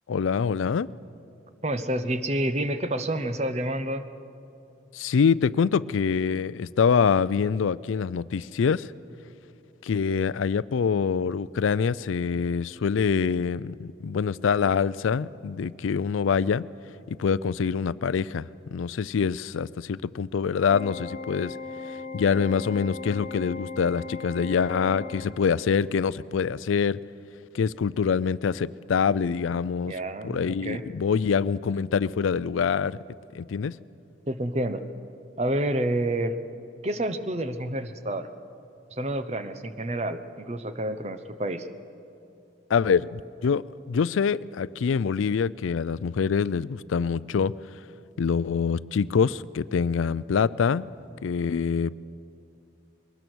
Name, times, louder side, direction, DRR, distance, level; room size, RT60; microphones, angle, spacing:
voice 1, 0.1-0.9 4.9-8.9 9.8-16.7 17.1-21.6 21.9-27.0 27.5-29.9 30.2-33.0 33.3-33.8 42.7-47.5 48.2-50.9 51.2-51.9, left 6 dB, 85° left, 19 dB, 0.4 m, -25 dB
voice 2, 1.6-4.0 29.9-30.8 34.3-34.8 35.4-36.4 36.8-38.3 38.9-41.7, right 1 dB, 35° right, 10 dB, 0.8 m, -29 dB
Organ, 20.7-25.7, left 4 dB, 35° left, 0.8 m, -38 dB
22.5 x 19.5 x 6.2 m, 2.7 s
head